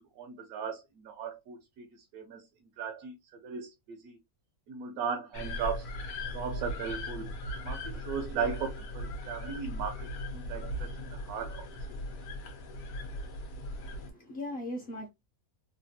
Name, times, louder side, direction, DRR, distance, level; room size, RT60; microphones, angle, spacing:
voice 1, 0.2-2.5 2.8-4.2 4.7-5.9 6.3-7.3 7.6-11.6, right 6 dB, 80° right, 1.2 m, -37 dB
sound 1, 5.3-14.1, left 1 dB, 70° left, 1.1 m, -38 dB
voice 2, 13.8-15.1, left 1 dB, 55° left, 0.8 m, -39 dB
3.3 x 2.2 x 2.6 m
omnidirectional pair, 1.6 m